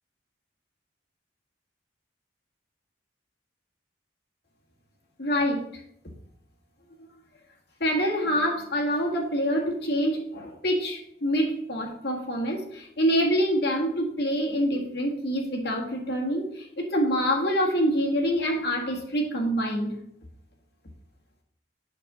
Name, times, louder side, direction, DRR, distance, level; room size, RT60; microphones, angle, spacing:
voice 1, 5.2-5.6 7.8-20.0, equal, 55° left, -1 dB, 1.9 m, -26 dB
8.5 x 6.2 x 3.8 m, 0.72 s
head